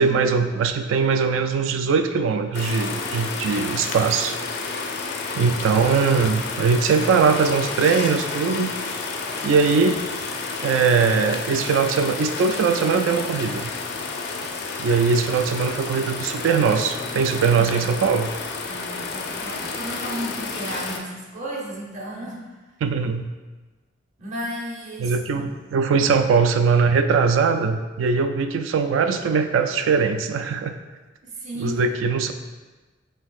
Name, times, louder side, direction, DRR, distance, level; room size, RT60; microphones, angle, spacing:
voice 1, 0.0-4.4 5.3-8.8 9.4-10.0 10.6-13.7 14.8-18.3 22.8-23.3 25.0-30.7 31.6-32.3, right 5 dB, 80° right, 9 dB, 0.3 m, -21 dB
sound 1, 2.5-21.0, left 4 dB, 60° left, 0.4 m, -31 dB
voice 2, 3.0-3.6 18.7-22.6 24.2-25.2 31.2-31.8, right 1 dB, 40° right, -3 dB, 0.8 m, -34 dB
4.5 x 3.3 x 2.4 m, 1.2 s
head